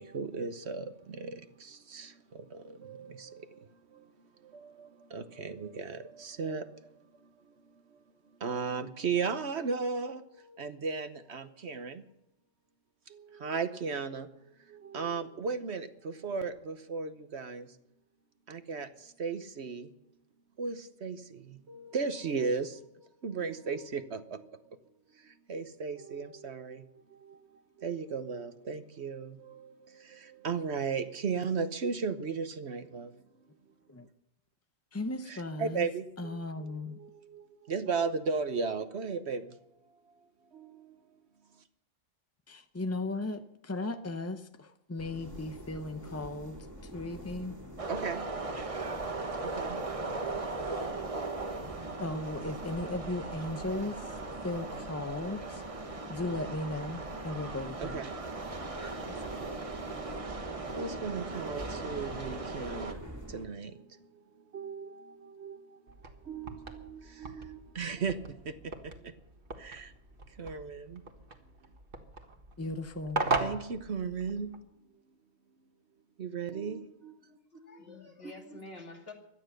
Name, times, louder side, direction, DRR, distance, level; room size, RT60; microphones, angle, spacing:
voice 1, 0.0-8.0 8.4-12.0 13.1-17.8 18.5-19.9 20.6-24.5 25.1-33.2 35.2-39.6 40.5-41.0 47.9-48.3 49.4-51.2 53.5-53.7 54.0-54.1 57.8-59.7 60.0-69.1 69.6-69.9 70.3-71.0 73.4-74.6 74.9-75.0 76.2-77.2, right 5 dB, 60° right, 10 dB, 1.2 m, -37 dB
voice 2, 34.9-35.9 36.2-37.0 42.5-46.7 46.9-47.6 52.0-54.2 54.4-55.6 56.1-58.0 72.6-73.2, left 2 dB, 20° left, 8 dB, 0.4 m, -36 dB
sound 1, 45.0-63.5, equal, 15° right, 2.2 m, -46 dB
sound 2, 47.8-62.9, right 3 dB, 30° right, 1.2 m, -39 dB
sound 3, 65.9-74.6, right 3 dB, 45° right, 1.7 m, -39 dB
voice 3, 77.2-79.1, left 3 dB, 50° left, 2 dB, 2.7 m, -48 dB
17.0 x 12.0 x 6.6 m, 0.81 s
omnidirectional pair, 1.3 m